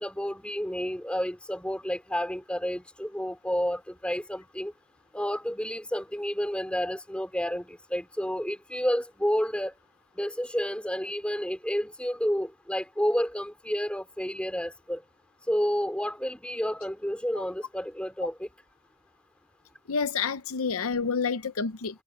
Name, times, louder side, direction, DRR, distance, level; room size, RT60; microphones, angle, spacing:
voice 1, 0.0-4.7 5.1-9.7 10.2-15.0 15.5-18.5, equal, 5° left, 3.0 m, -30 dB
voice 2, 19.9-22.0, left 5 dB, 70° left, 0.7 m, -29 dB
head